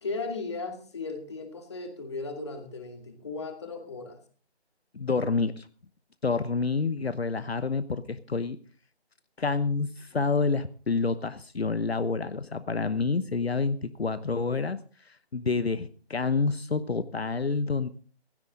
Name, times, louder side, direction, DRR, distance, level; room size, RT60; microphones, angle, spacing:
voice 1, 0.0-4.2, left 3 dB, 25° left, 5 dB, 2.3 m, -36 dB
voice 2, 4.9-5.7 6.2-8.6 9.4-14.8 15.0-17.9, left 4 dB, 65° left, 12 dB, 1.1 m, -28 dB
16.0 x 15.5 x 3.7 m, 0.41 s
figure-of-eight pair, 170°, 33 cm